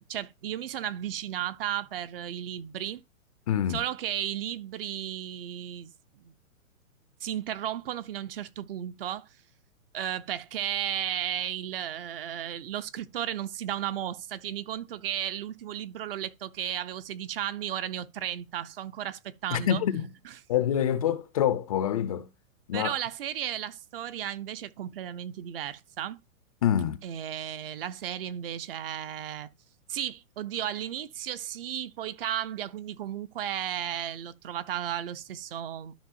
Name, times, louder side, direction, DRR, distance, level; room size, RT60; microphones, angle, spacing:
voice 1, 0.0-3.0 3.7-5.9 6.2-6.3 7.2-9.3 9.9-19.8 20.2-20.4 22.7-26.2 27.0-29.5 29.9-35.9, right 11 dB, 40° right, 0.7 m, -34 dB
voice 2, 3.5-3.8 19.5-20.1 20.5-22.3 22.7-22.9 26.6-27.0, left 10 dB, 25° left, 0.5 m, -26 dB
12.5 x 5.4 x 2.6 m
hypercardioid pair, 150°, 42 cm